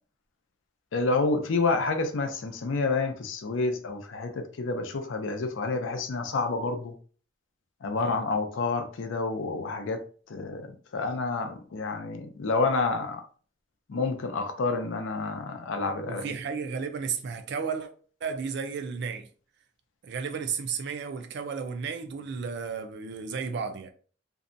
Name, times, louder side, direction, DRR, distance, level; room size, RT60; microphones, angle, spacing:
voice 1, 0.9-6.9 7.8-10.0 10.3-10.7 10.9-13.2 13.9-16.3, left 3 dB, 85° left, 0.5 m, -29 dB
voice 2, 16.1-17.9 18.2-19.3 20.0-23.9, right 5 dB, 65° right, 0.4 m, -33 dB
2.6 x 2.1 x 2.5 m
head